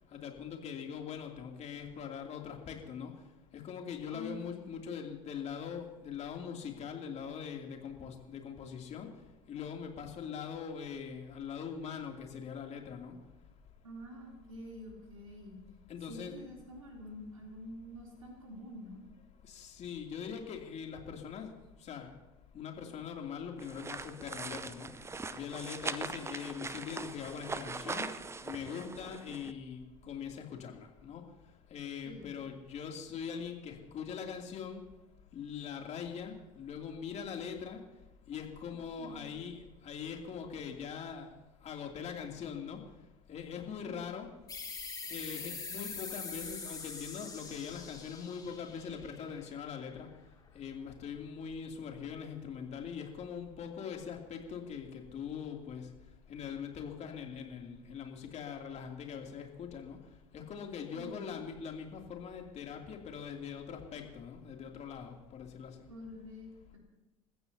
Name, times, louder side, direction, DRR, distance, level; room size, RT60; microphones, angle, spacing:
voice 1, 0.1-3.1 3.5-9.1 9.5-13.1 15.9-16.4 19.5-21.5 21.8-22.1 22.5-24.9 25.3-28.1 28.4-31.2 31.7-34.8 35.3-37.8 38.3-41.3 41.6-42.8 43.3-44.3 45.1-50.1 50.5-55.8 56.3-60.0 60.3-65.7, left 7 dB, 40° left, 2 dB, 2.9 m, -42 dB
voice 2, 4.1-4.6 13.8-15.6 16.1-19.0 32.0-32.3 39.0-39.2 43.8-44.1 61.0-61.2 65.9-66.8, left 1 dB, 90° right, -1 dB, 3.2 m, -47 dB
sound 1, 23.6-29.5, right 4 dB, 15° right, 0.8 m, -41 dB
sound 2, 44.5-49.8, left 4 dB, 20° left, 3.6 m, -44 dB
29.5 x 15.0 x 2.8 m, 1.0 s
hypercardioid pair, 70°, 17 cm